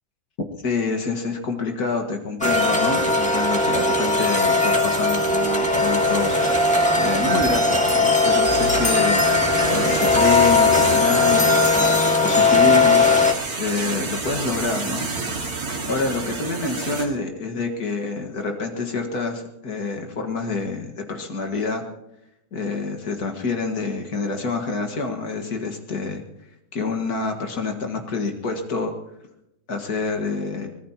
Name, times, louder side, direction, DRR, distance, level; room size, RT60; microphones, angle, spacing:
voice 1, 0.6-6.4 6.6-9.2 9.7-15.1 15.9-21.8 22.5-26.2 26.7-28.9 29.7-30.7, left 4 dB, 80° left, 3 dB, 2.2 m, -27 dB
sound 1, 2.4-13.3, left 3 dB, 5° left, 1.8 m, -19 dB
sound 2, 5.7-17.1, right 3 dB, 75° right, 2.6 m, -30 dB
24.0 x 19.5 x 2.9 m, 0.86 s
omnidirectional pair, 1.6 m